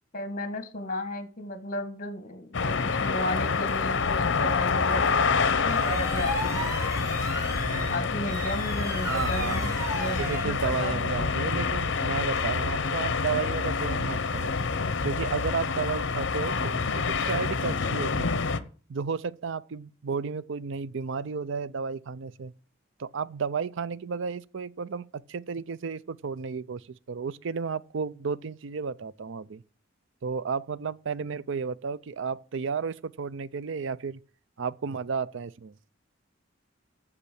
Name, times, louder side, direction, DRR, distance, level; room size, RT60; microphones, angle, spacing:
voice 1, 0.1-6.7 7.9-11.3 16.5-16.7, left 1 dB, 45° left, 1.7 m, -34 dB
sound 1, 2.5-18.6, left 5 dB, 65° left, 0.8 m, -27 dB
sound 2, 3.9-12.5, equal, 15° right, 3.4 m, -37 dB
voice 2, 7.5-8.1 9.1-9.8 10.2-14.6 15.0-18.4 18.9-22.5 23.0-29.6 30.2-34.2 34.6-35.7, right 5 dB, 65° right, 0.5 m, -33 dB
8.3 x 6.8 x 8.5 m
head